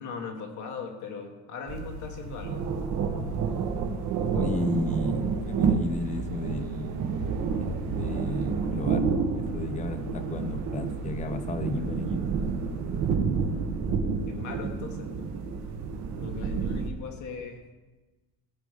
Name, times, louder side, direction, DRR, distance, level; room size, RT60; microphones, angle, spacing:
voice 1, 0.0-2.6 14.3-15.3 16.2-17.6, left 5 dB, 55° left, 2 dB, 1.5 m, -39 dB
sound 1, 1.7-16.9, right 5 dB, 55° right, 1.3 m, -29 dB
voice 2, 4.3-7.1 7.6-12.3 16.8-16.9, left 3 dB, 20° left, 10 dB, 0.6 m, -34 dB
16.0 x 5.4 x 4.9 m, 1.2 s
cardioid pair, 165°, 36 cm